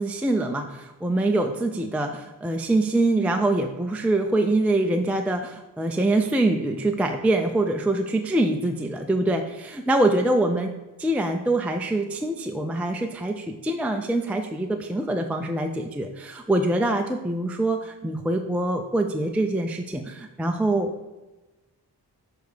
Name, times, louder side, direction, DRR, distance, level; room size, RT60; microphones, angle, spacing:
voice 1, 0.0-10.7 11.0-20.9, right 2 dB, 5° right, 4 dB, 0.4 m, -24 dB
6.8 x 3.5 x 6.2 m, 1.1 s
wide cardioid pair, 110°, 42 cm